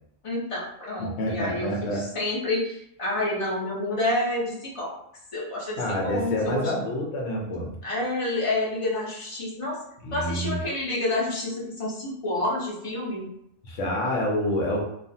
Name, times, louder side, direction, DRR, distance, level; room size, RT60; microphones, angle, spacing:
voice 1, 0.2-4.9 5.3-6.7 7.8-9.8 10.1-13.3, left 2 dB, 35° left, -5 dB, 0.6 m, -29 dB
voice 2, 1.0-2.0 5.8-7.7 10.0-10.6 13.6-14.8, equal, 75° left, -1 dB, 0.9 m, -27 dB
2.4 x 2.4 x 2.6 m, 0.75 s
omnidirectional pair, 1.3 m